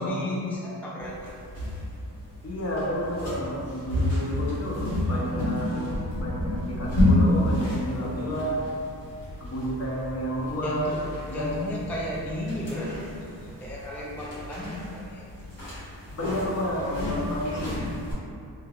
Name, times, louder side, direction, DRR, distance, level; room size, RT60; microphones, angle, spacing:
voice 1, 0.0-1.3 10.6-12.9 13.4-15.2, left 1 dB, 5° left, -5 dB, 0.3 m, -34 dB
sound 1, 1.0-18.1, left 1 dB, 80° left, 1.4 m, -30 dB
voice 2, 2.4-8.7 9.4-11.0 11.3-11.5 16.1-17.9, equal, 35° left, -4 dB, 0.7 m, -30 dB
3.1 x 2.4 x 2.3 m, 2.5 s
cardioid pair, 55°, 42 cm